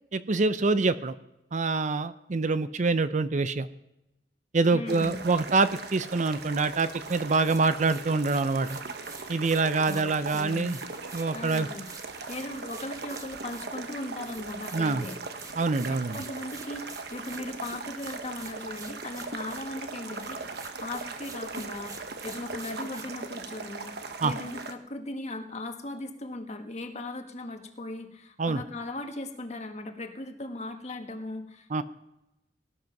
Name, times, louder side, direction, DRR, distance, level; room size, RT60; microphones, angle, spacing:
voice 1, 0.1-1.1 1.5-3.7 4.5-8.8 9.3-10.8 11.1-11.7 14.7-15.1 15.6-16.2 24.2-24.3 28.4-28.6 31.7-31.8, right 3 dB, 45° right, 14 dB, 0.6 m, -25 dB
voice 2, 4.7-5.2 9.8-10.8 11.3-11.9 12.3-15.2 15.9-31.8, left 2 dB, 40° left, 5 dB, 1.6 m, -38 dB
sound 1, 4.9-24.7, right 4 dB, 65° right, 1.1 m, -39 dB
sound 2, 7.0-19.9 20.1-23.0, right 3 dB, 20° right, 1.2 m, -48 dB
18.5 x 10.5 x 5.9 m, 0.92 s
head